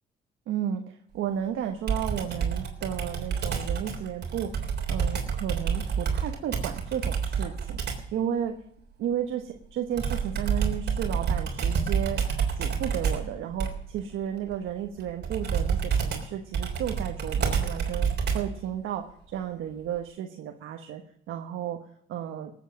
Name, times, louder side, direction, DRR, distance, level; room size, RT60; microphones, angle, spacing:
voice 1, 0.5-4.5 4.9-7.8 8.1-8.5 9.0-12.2 12.5-19.0 19.3-21.0 21.3-21.8 22.1-22.5, right 9 dB, 85° right, 4 dB, 1.3 m, -33 dB
Computer keyboard, 1.9-8.1 10.0-18.6, right 6 dB, 55° right, 3.4 m, -28 dB
18.5 x 8.3 x 6.4 m, 0.71 s
cardioid pair, 90°, 20 cm